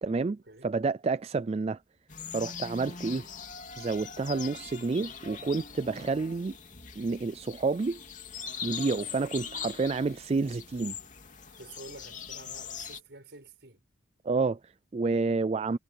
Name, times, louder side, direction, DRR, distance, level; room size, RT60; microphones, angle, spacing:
voice 1, 0.0-1.8 2.3-3.2 3.8-6.6 7.0-8.0 8.6-11.0 14.2-15.8, right 4 dB, 35° right, 0.3 m, -29 dB
sound 1, 2.1-13.0, left 6 dB, 40° left, 2.8 m, -42 dB
voice 2, 11.6-13.8, right 2 dB, 65° right, 6.4 m, -49 dB
head